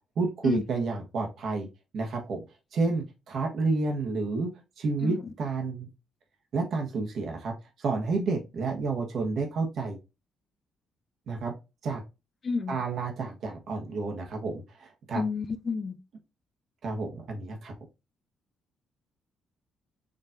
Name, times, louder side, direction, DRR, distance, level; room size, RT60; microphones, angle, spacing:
voice 1, 0.2-1.7 1.9-2.4 2.7-4.5 4.8-5.9 6.5-10.0 11.3-11.5 11.8-12.0 12.7-15.2 16.8-17.7, right 3 dB, 65° right, 1.4 m, -30 dB
voice 2, 12.4-12.8 15.1-16.0, left 4 dB, 40° left, 0.5 m, -29 dB
5.1 x 3.1 x 2.6 m
cardioid pair, 90°, 0 cm